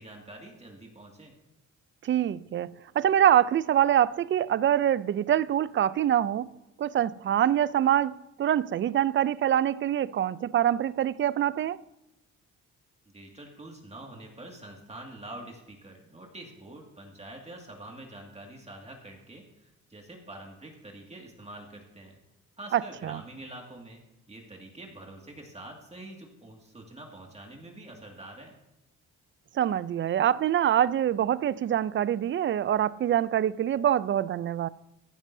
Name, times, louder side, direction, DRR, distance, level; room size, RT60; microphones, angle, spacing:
voice 1, 0.0-1.3 13.1-22.2 22.6-24.0 24.3-28.5, right 1 dB, 20° right, 2.1 m, -46 dB
voice 2, 2.0-6.5 6.8-11.8 22.7-23.2 29.5-34.7, right 10 dB, 40° right, 0.4 m, -25 dB
15.5 x 11.0 x 2.7 m
cardioid pair, 90°, 30 cm